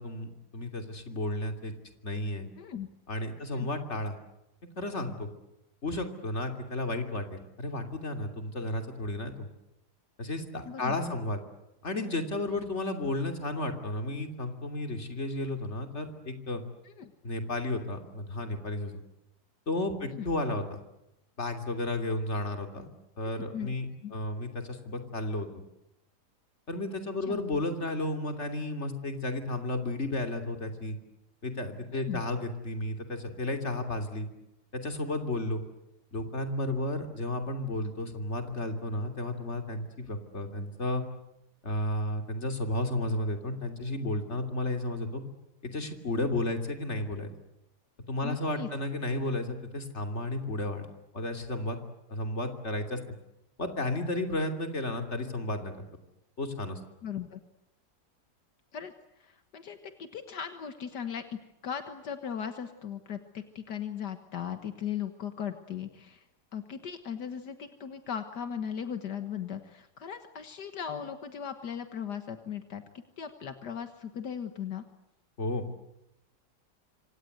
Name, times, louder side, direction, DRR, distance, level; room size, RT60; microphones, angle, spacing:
voice 1, 0.0-1.7 2.0-2.5 3.1-4.2 4.8-5.3 5.8-9.5 10.2-11.4 11.8-16.6 17.2-19.0 19.7-20.8 21.4-22.9 23.2-25.5 26.7-31.0 31.4-34.3 34.7-35.6 36.1-41.0 41.6-45.2 45.6-47.3 48.1-50.9 51.1-51.8 52.1-53.0 53.6-55.7 56.4-56.8 75.4-75.6, left 2 dB, 40° left, 5 dB, 3.3 m, -33 dB
voice 2, 2.6-2.9 3.5-3.7 10.7-11.2 16.9-17.1 20.1-20.3 23.4-23.7 24.0-24.1 27.2-27.4 31.9-32.2 48.2-48.7 57.0-57.4 58.7-66.2 66.5-74.8, left 8 dB, 75° left, 8 dB, 2.0 m, -38 dB
27.0 x 26.0 x 8.0 m, 0.87 s
omnidirectional pair, 1.8 m